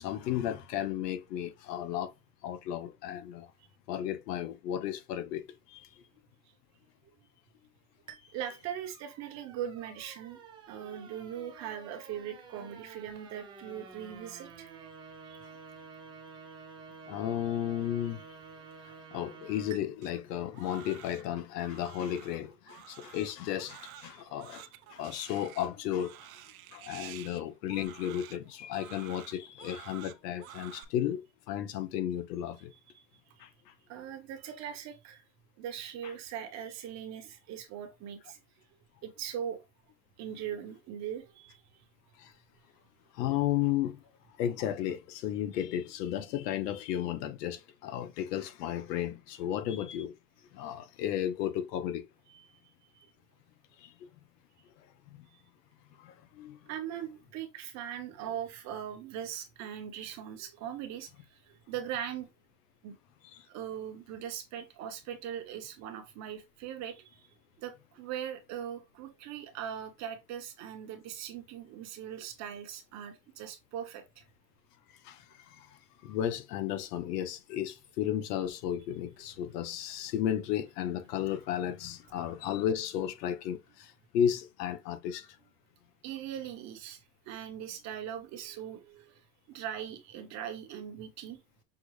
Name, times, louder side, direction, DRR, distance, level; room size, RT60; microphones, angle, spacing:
voice 1, 0.0-2.1 2.4-3.5 3.9-5.9 17.1-18.2 18.8-26.2 26.7-32.7 33.4-33.7 42.2-42.3 43.1-44.0 44.4-50.1 50.5-52.0 53.8-53.9 55.1-55.3 56.0-56.6 63.3-63.4 75.0-85.4, left 10 dB, 80° left, 1.0 m, -34 dB
sound 1, 8.1-19.8, right 5 dB, 10° right, 0.3 m, -50 dB
voice 2, 8.3-10.4 10.7-14.7 15.3-15.5 24.1-24.2 32.9-33.5 33.9-35.2 35.6-38.4 39.0-39.6 40.2-41.8 52.3-52.6 52.9-53.1 56.7-62.3 62.8-63.0 63.5-67.3 67.6-74.2 86.0-91.4, right 9 dB, 35° right, 1.0 m, -40 dB
Crying sobbing, 20.0-30.8, right 12 dB, 60° right, 0.7 m, -50 dB
6.1 x 2.3 x 3.1 m
supercardioid pair, 155°, 48 cm